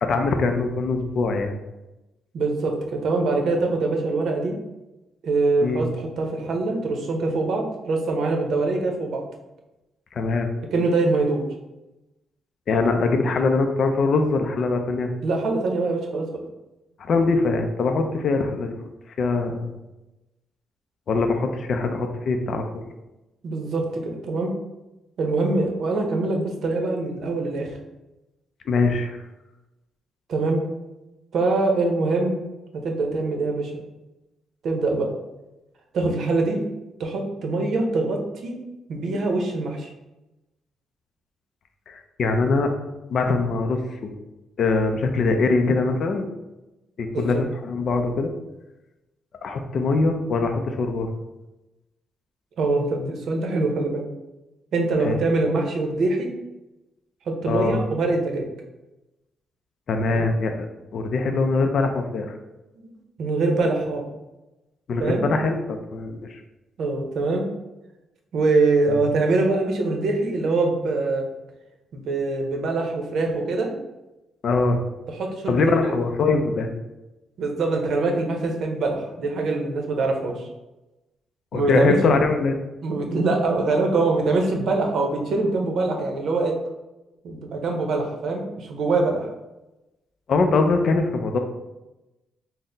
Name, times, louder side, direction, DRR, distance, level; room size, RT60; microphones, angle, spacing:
voice 1, 0.0-1.5 5.6-5.9 10.1-10.5 12.7-15.1 17.0-18.8 19.2-19.7 21.1-22.7 28.7-29.2 41.9-42.7 43.1-44.1 44.6-46.3 47.0-48.3 49.4-51.1 55.0-55.1 57.5-57.8 59.9-60.7 60.9-62.4 64.9-66.4 74.4-74.8 75.5-76.7 81.5-82.6 90.3-91.4, left 3 dB, 50° left, 5 dB, 0.4 m, -22 dB
voice 2, 2.3-4.5 5.2-9.2 10.7-11.4 15.2-16.3 23.4-24.5 25.2-27.7 30.3-30.6 31.3-32.4 32.8-33.7 34.6-35.1 35.9-36.6 37.0-38.5 38.9-39.9 47.1-47.4 52.6-54.1 54.7-56.3 57.3-58.5 60.1-60.3 62.8-62.9 63.2-64.0 65.0-65.2 66.8-67.5 68.3-71.2 71.9-73.7 75.1-76.0 77.4-80.5 81.5-82.0 82.8-86.5 87.2-89.3, right 3 dB, 60° right, 2 dB, 0.6 m, -23 dB
4.1 x 2.0 x 3.8 m, 1.0 s
cardioid pair, 150°, 0 cm